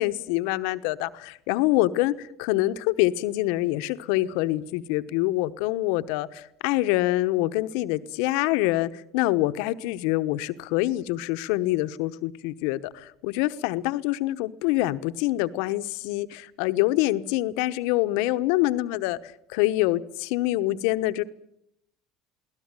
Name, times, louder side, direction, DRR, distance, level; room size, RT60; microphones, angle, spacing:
voice 1, 0.0-21.2, left 17 dB, 75° left, 1.0 m, -25 dB
23.0 x 17.5 x 9.0 m
hypercardioid pair, 85°, 0 cm